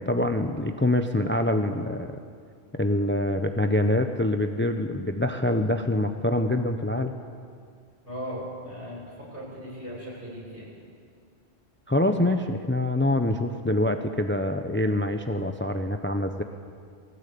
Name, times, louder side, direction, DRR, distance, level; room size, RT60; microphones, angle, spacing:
voice 1, 0.0-2.1 2.7-7.1 11.9-16.4, left 1 dB, 10° left, 7 dB, 0.7 m, -25 dB
voice 2, 8.1-9.0 9.3-10.7, equal, 55° right, -5 dB, 7.6 m, -37 dB
19.5 x 18.0 x 8.6 m, 2.2 s
omnidirectional pair, 1.1 m